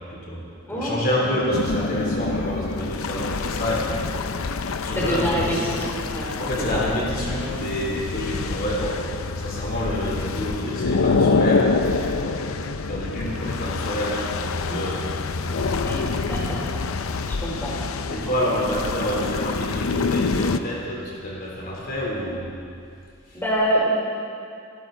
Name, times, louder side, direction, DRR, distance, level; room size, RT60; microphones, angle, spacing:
voice 1, 0.1-0.4 0.7-4.3 4.8-5.8 6.4-9.1 9.4-15.0 15.3-16.3 18.1-22.5 23.3-23.4, equal, 50° left, -4 dB, 3.3 m, -28 dB
voice 2, 0.7-1.2 4.9-5.9 6.1-6.3 6.7-6.8 14.7-14.8 15.9-16.8 17.3-17.7 23.3-23.9, equal, 10° left, -5 dB, 3.5 m, -26 dB
sound 1, 1.5-20.6, left 4 dB, 90° left, 0.6 m, -26 dB
27.5 x 12.5 x 3.9 m, 2.4 s
head